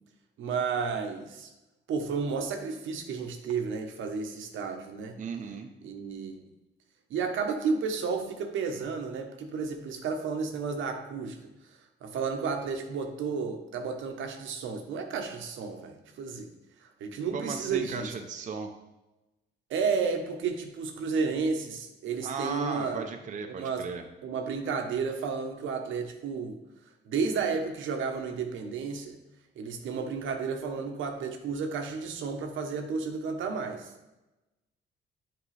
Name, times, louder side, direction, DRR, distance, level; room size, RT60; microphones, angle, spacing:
voice 1, 0.4-1.5 1.9-5.2 5.8-6.5 7.1-11.4 12.0-16.5 17.0-18.1 19.7-23.1 23.5-23.8 24.2-26.6 27.1-29.1 29.6-33.9, right 5 dB, 75° right, 5 dB, 0.9 m, -32 dB
voice 2, 5.2-5.7 17.3-18.7 22.2-24.0, right 5 dB, 40° right, 5 dB, 0.6 m, -36 dB
7.6 x 4.5 x 3.3 m, 1.0 s
cardioid pair, 90°, 20 cm